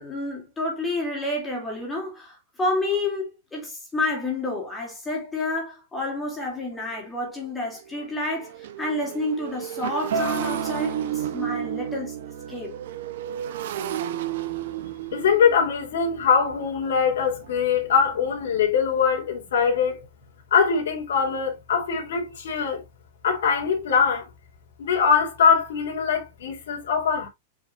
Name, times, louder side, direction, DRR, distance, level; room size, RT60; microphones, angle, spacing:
voice 1, 0.0-12.2 12.5-12.7, left 2 dB, 10° left, 2.9 m, -29 dB
Motorcycle, 6.0-6.1 6.6-6.8 7.0-18.6, right 11 dB, 55° right, 1.0 m, -34 dB
Acoustic guitar, 10.1-15.3, right 5 dB, 75° right, 2.3 m, -35 dB
voice 2, 15.1-20.0 20.5-22.8 23.2-24.2 24.8-27.3, left 6 dB, 80° left, 3.2 m, -22 dB
7.4 x 5.2 x 2.6 m
supercardioid pair, 180°, 0 cm